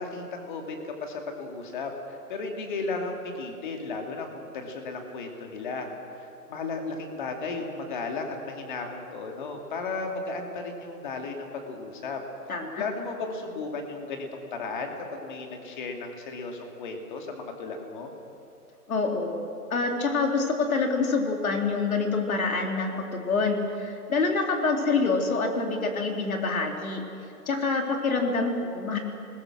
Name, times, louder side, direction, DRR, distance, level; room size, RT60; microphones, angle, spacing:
voice 1, 0.0-12.2 12.8-18.1, left 3 dB, 30° left, 3 dB, 2.6 m, -35 dB
voice 2, 12.5-12.9 18.9-19.4 19.7-27.0 27.5-29.0, left 4 dB, 60° left, 2 dB, 4.0 m, -26 dB
28.0 x 21.0 x 6.3 m, 3.0 s
hypercardioid pair, 165°, 47 cm